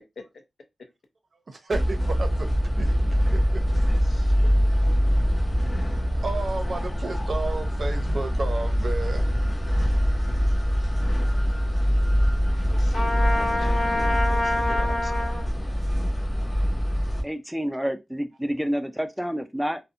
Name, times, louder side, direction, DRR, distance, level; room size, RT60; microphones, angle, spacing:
voice 1, 1.5-3.6 6.0-9.3 9.8-10.0 10.2-10.4, right 3 dB, 55° right, 0.5 m, -33 dB
sound 1, 1.7-17.2, equal, 25° left, 0.8 m, -23 dB
voice 2, 4.1-4.7 12.7-15.7, left 3 dB, 80° left, 0.6 m, -43 dB
Trumpet, 12.9-15.4, left 1 dB, 65° left, 1.0 m, -26 dB
voice 3, 17.2-19.8, equal, ahead, 0.3 m, -28 dB
2.6 x 2.0 x 2.4 m
wide cardioid pair, 130°, 0 cm